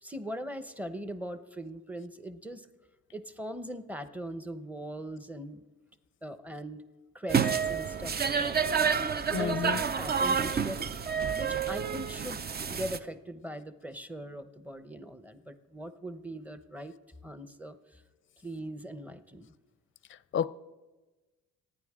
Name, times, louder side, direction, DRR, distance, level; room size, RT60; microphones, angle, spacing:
voice 1, 0.0-2.7 3.1-5.6 6.2-6.8 7.1-8.9 9.3-10.9 11.3-12.4 12.7-16.9 17.2-18.0 18.4-19.5, right 1 dB, 5° right, 0.9 m, -40 dB
sound 1, 7.3-13.0, right 6 dB, 30° right, 0.6 m, -29 dB
voice 2, 9.3-9.8 20.3-20.5, left 8 dB, 40° left, 0.5 m, -29 dB
26.0 x 9.6 x 3.7 m
cardioid pair, 90°, 30 cm